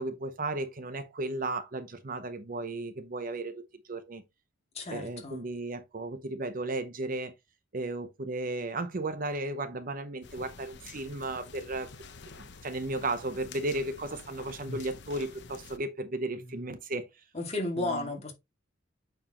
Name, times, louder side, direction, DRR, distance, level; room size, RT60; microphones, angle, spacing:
voice 1, 0.0-4.2 4.9-7.3 7.7-11.9 12.4-17.1 17.8-18.1, right 2 dB, 45° right, 0.8 m, -35 dB
voice 2, 4.7-5.4 16.5-16.6 17.3-18.3, left 2 dB, 35° left, 2.3 m, -33 dB
sound 1, 10.2-15.8, left 3 dB, 60° left, 0.9 m, -47 dB
8.7 x 4.6 x 3.0 m
head